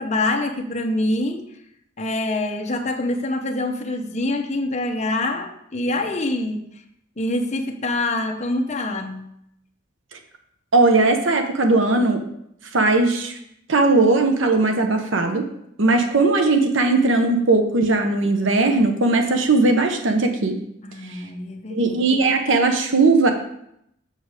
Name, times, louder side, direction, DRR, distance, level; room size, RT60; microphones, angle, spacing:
voice 1, 0.0-1.5 2.0-6.6 7.2-9.3 20.8-21.9, left 2 dB, 35° left, 4 dB, 0.8 m, -25 dB
voice 2, 10.7-12.2 12.7-13.4 13.7-15.4 15.8-20.6 21.1-21.2 21.7-23.3, right 3 dB, 70° right, 5 dB, 0.9 m, -18 dB
6.7 x 6.5 x 4.9 m, 0.76 s
head